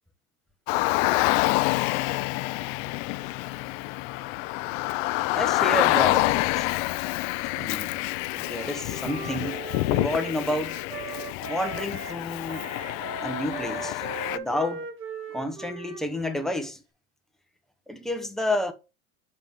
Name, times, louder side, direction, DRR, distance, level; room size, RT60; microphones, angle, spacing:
Car, 0.7-14.4, left 19 dB, 65° left, 0.5 m, -27 dB
voice 1, 5.3-6.7 7.5-7.9 8.4-10.8 11.5-12.7 13.2-14.1 14.3-14.9 15.3-16.8 17.9-18.7, left 1 dB, ahead, 0.8 m, -30 dB
Wind instrument woodwind instrument, 8.4-12.2 12.5-16.6, right 4 dB, 35° right, 1.4 m, -39 dB
7.3 x 5.3 x 3.0 m
supercardioid pair, 130°, 34 cm